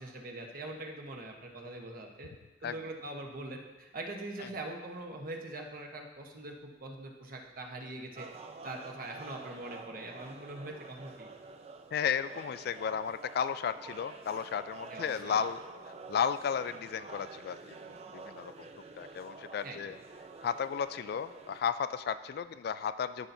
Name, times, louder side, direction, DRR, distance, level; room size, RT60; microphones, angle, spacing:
voice 1, 0.0-2.3 2.6-6.5 6.8-8.3 8.6-11.3 14.9-15.4 19.6-20.0, right 2 dB, 50° right, 2 dB, 1.0 m, -42 dB
sound 1, 8.2-21.6, right 3 dB, 35° right, 0.5 m, -49 dB
voice 2, 11.9-15.6 16.1-17.6 18.1-18.7 19.0-20.0 20.4-23.3, left 7 dB, 60° left, 13 dB, 0.3 m, -33 dB
13.5 x 5.7 x 2.7 m, 1.2 s
head